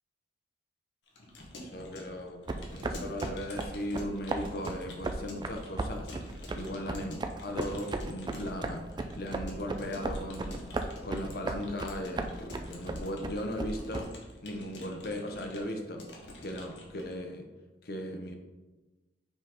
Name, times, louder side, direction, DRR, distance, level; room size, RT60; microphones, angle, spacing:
Keyboard (musical) / Computer keyboard, 1.1-17.2, left 1 dB, 90° left, 1.2 m, -48 dB
voice 1, 1.5-10.7 11.0-16.1 16.4-17.5 17.8-18.3, left 1 dB, 60° left, 3 dB, 0.8 m, -38 dB
sound 1, 2.5-14.0, right 2 dB, 25° right, 0.4 m, -36 dB
5.2 x 3.8 x 4.9 m, 1.2 s
head